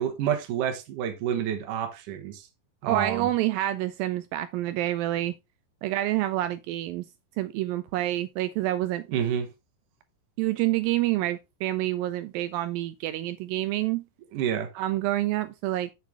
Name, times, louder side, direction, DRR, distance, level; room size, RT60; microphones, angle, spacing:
voice 1, 0.0-2.5 2.8-3.3 9.1-9.5 14.3-14.7, right 9 dB, 65° right, 2.6 m, -28 dB
voice 2, 2.9-5.3 5.8-7.1 7.4-9.1 10.4-14.0 14.8-15.9, right 15 dB, 85° right, 2.0 m, -27 dB
7.8 x 6.7 x 3.4 m
omnidirectional pair, 4.6 m